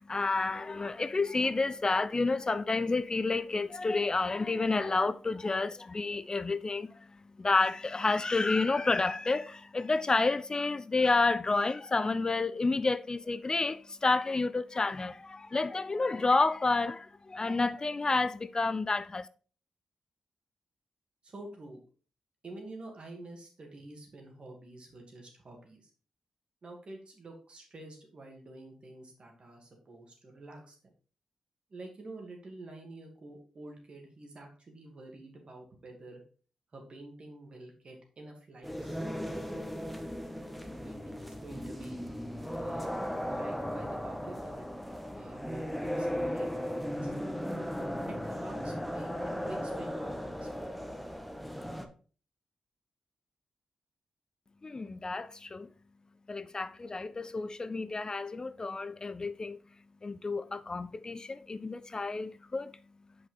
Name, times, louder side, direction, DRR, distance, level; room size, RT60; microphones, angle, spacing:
voice 1, 0.0-19.3 54.6-55.7 56.3-59.6 60.0-62.7, left 3 dB, 35° left, 0.4 m, -30 dB
voice 2, 21.2-21.8 22.4-25.9 26.6-30.8 31.7-36.2 36.7-39.3 40.3-42.0 42.5-42.9 43.2-44.7 45.1-47.1 48.1-50.5, right 2 dB, 55° right, 2.2 m, -48 dB
sound 1, 38.6-51.9, equal, ahead, 1.0 m, -36 dB
5.7 x 5.4 x 3.8 m
cardioid pair, 50°, 2 cm